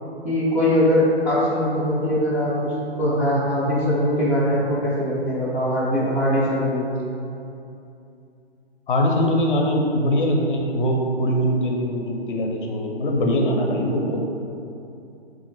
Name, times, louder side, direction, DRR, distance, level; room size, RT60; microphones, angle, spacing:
voice 1, 0.2-6.8, equal, 5° right, -11 dB, 0.5 m, -21 dB
voice 2, 8.9-14.2, equal, 55° left, 0 dB, 0.6 m, -22 dB
3.6 x 2.4 x 4.4 m, 2.7 s
figure-of-eight pair, 125°, 31 cm